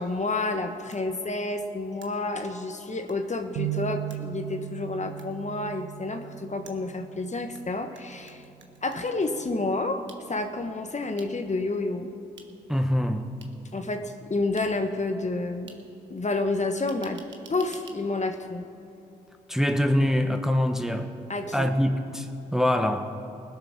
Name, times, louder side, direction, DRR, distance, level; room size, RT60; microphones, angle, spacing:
voice 1, 0.0-8.4 8.8-10.0 10.3-12.1 13.7-15.7 16.1-17.2 17.5-18.6 21.3-21.7, left 2 dB, 35° left, 6 dB, 1.4 m, -29 dB
sound 1, 0.9-1.0 2.0-2.1 3.1-3.2 4.1-4.2 5.2-5.3 6.7-7.6 8.0-9.1 10.1-10.2 11.2-11.3 12.4-12.5 13.4-13.5 14.6-14.7 15.7-15.8 16.9-18.0, right 5 dB, 70° right, 1.3 m, -49 dB
sound 2, 3.6-7.8 8.3-8.5 9.4-9.8, right 17 dB, 85° right, 0.5 m, -37 dB
voice 2, 12.7-13.3 19.5-21.1 21.5-23.1, left 1 dB, ahead, 5 dB, 1.1 m, -24 dB
20.0 x 7.0 x 6.1 m, 2.7 s
supercardioid pair, 40°, 20 cm